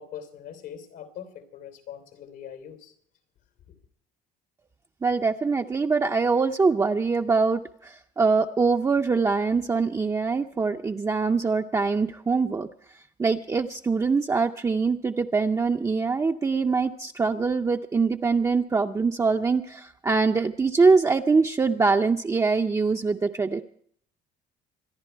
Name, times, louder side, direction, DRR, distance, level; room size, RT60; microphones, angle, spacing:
voice 1, 0.0-2.9, left 9 dB, 90° left, 3.2 m, -42 dB
voice 2, 5.0-12.7 13.2-23.6, right 4 dB, 20° right, 0.5 m, -23 dB
25.0 x 10.5 x 4.5 m
cardioid pair, 110°, 17 cm